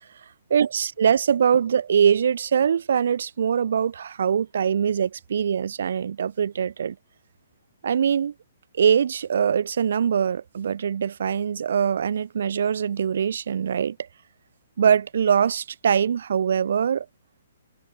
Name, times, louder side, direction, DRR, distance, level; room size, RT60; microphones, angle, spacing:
voice 1, 0.5-6.9 7.8-8.3 8.8-14.0 14.8-17.1, right 7 dB, 60° right, 0.3 m, -22 dB
figure-of-eight pair, 125°, 0 cm